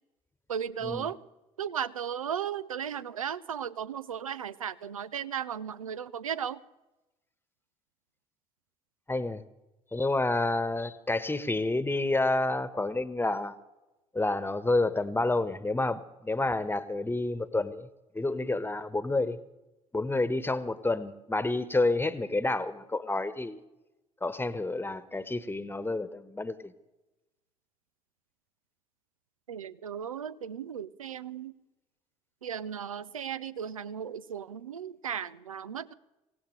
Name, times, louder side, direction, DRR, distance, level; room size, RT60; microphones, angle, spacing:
voice 1, 0.5-1.2 1.6-6.6 29.5-31.5 32.4-35.9, right 8 dB, 90° right, 17 dB, 0.4 m, -36 dB
voice 2, 9.1-9.4 9.9-13.6 14.1-17.9 18.1-19.4 19.9-23.6 24.2-26.7, left 2 dB, 15° left, 14 dB, 1.2 m, -29 dB
24.5 x 17.5 x 3.3 m, 1.0 s
figure-of-eight pair, 50°, 17 cm